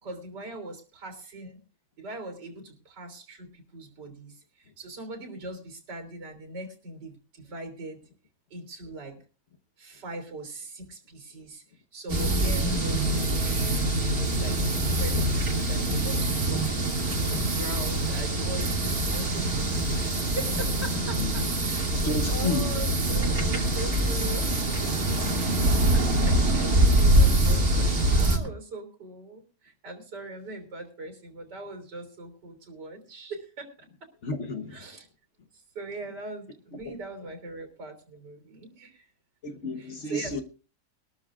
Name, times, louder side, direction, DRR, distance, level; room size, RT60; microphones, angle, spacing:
voice 1, 0.0-1.6 2.0-8.0 8.5-9.1 9.8-11.6 11.9-13.1 13.4-21.9 22.3-24.8 25.9-33.9 34.7-35.1 35.8-39.1 39.8-40.4, right 2 dB, 80° right, 3.9 m, -41 dB
sound 1, 12.1-28.4, right 1 dB, 60° right, 3.0 m, -24 dB
voice 2, 22.0-22.7 34.2-34.8 39.4-40.4, left 2 dB, 45° left, 1.4 m, -31 dB
22.0 x 13.0 x 2.5 m
omnidirectional pair, 1.8 m